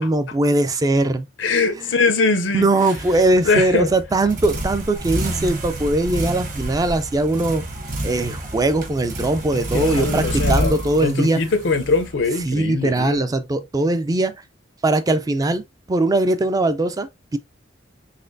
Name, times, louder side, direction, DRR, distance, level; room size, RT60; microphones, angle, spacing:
voice 1, 0.0-1.3 2.5-7.6 8.0-11.4 12.5-14.3 14.8-15.6 15.9-17.4, right 2 dB, 20° right, 0.3 m, -20 dB
voice 2, 1.4-2.7 3.4-3.9 9.7-13.2, left 4 dB, 85° left, 0.6 m, -21 dB
sound 1, 2.8-12.6, right 1 dB, 45° right, 1.2 m, -28 dB
4.1 x 3.1 x 2.5 m
head